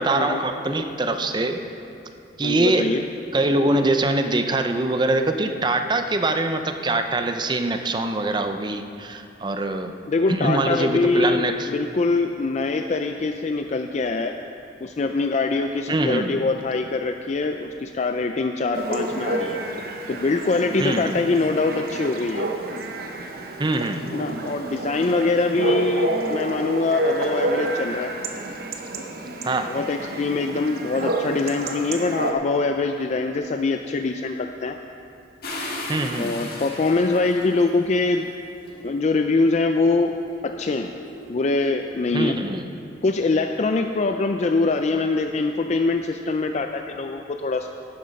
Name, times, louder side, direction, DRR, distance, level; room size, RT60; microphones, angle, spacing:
voice 1, 0.0-1.6 2.4-3.0 3.3-9.9 10.3-11.7 15.9-16.4 20.8-21.2 23.6-24.0 29.4-29.9 35.9-36.4 42.1-42.7, right 2 dB, 25° right, 7 dB, 0.5 m, -23 dB
voice 2, 2.4-3.0 10.1-14.3 14.8-19.6 20.1-22.5 24.1-28.1 29.7-34.8 36.2-38.3 38.8-40.1 40.4-40.9 41.3-42.4 43.0-47.7, left 3 dB, 35° left, 5 dB, 0.4 m, -23 dB
Chatter / Bark / Livestock farm animals working animals, 18.7-32.3, right 2 dB, 50° right, 0.9 m, -29 dB
sound 1, 35.4-38.0 38.7-41.5, left 1 dB, 50° left, 1.9 m, -37 dB
12.0 x 9.4 x 5.2 m, 2.8 s
head